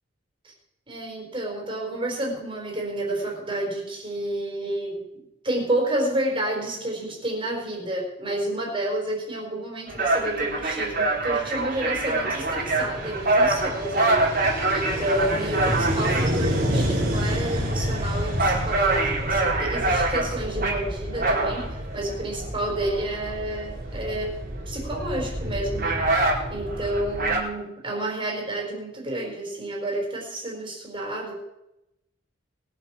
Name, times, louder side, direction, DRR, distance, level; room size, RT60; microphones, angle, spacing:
voice 1, 0.9-24.4 24.7-31.4, right 1 dB, 25° right, -1 dB, 4.5 m, -30 dB
sound 1, 9.9-27.4, right 2 dB, 45° right, 4.0 m, -25 dB
21.5 x 7.6 x 6.3 m, 0.88 s
head